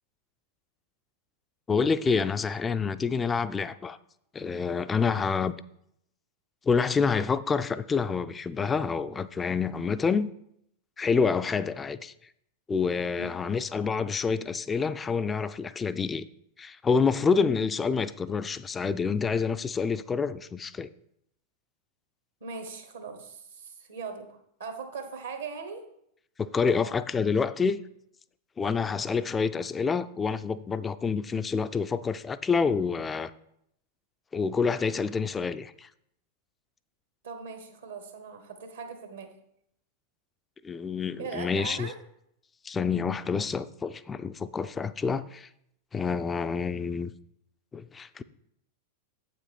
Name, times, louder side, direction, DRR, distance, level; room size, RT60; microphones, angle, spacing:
voice 1, 1.7-4.0 4.3-5.6 6.7-10.3 11.0-12.1 12.7-16.3 16.6-20.9 26.4-27.8 28.6-33.3 34.3-35.9 40.6-41.9 42.6-45.5 45.9-47.1 47.7-48.2, left 5 dB, 15° left, 14 dB, 0.4 m, -27 dB
voice 2, 22.4-25.8 37.2-39.3 41.2-42.0, right 5 dB, 70° right, 5 dB, 1.1 m, -40 dB
8.1 x 5.9 x 4.5 m, 0.74 s
figure-of-eight pair, 90°, 0 cm